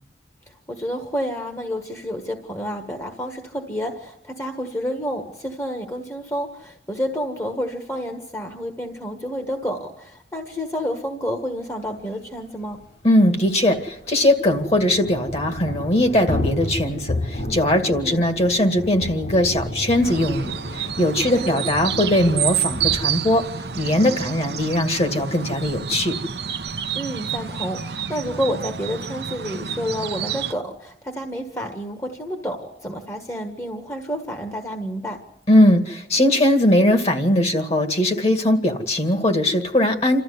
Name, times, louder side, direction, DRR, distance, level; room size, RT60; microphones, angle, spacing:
voice 1, 0.5-12.8 17.9-18.2 21.3-21.6 26.9-35.2, equal, 15° left, 4 dB, 1.5 m, -29 dB
Thunder / Rain, 12.0-12.1 12.3-12.4 12.7-28.6, left 1 dB, 65° left, 5.3 m, -34 dB
voice 2, 13.0-23.4 23.8-26.2 35.5-40.2, left 1 dB, 35° left, 6 dB, 2.2 m, -20 dB
sound 1, 20.0-30.5, right 8 dB, 60° right, 0.8 m, -29 dB
28.0 x 13.5 x 9.6 m, 0.78 s
head